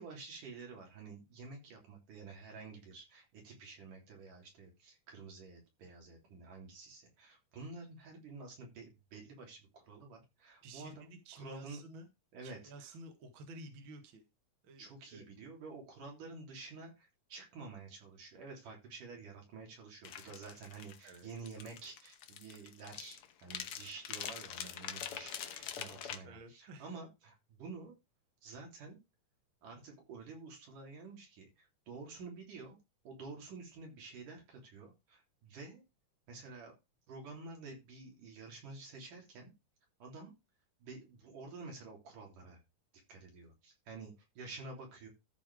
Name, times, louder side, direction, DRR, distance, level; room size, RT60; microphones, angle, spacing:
voice 1, 0.0-11.1 11.3-11.8 12.3-12.9 14.8-27.9 28.4-29.0 29.6-32.8 33.0-35.8 36.3-36.7 37.1-39.5 40.0-40.3 40.8-42.6 43.1-45.1, right 3 dB, 80° right, 0 dB, 5.0 m, -50 dB
voice 2, 10.6-12.1 12.4-14.2 14.6-15.3 21.0-21.3 26.2-26.9, right 2 dB, 45° right, 6 dB, 2.1 m, -52 dB
sound 1, 20.0-26.2, left 9 dB, 65° left, 1.4 m, -44 dB
13.5 x 4.8 x 4.9 m, 0.25 s
omnidirectional pair, 3.7 m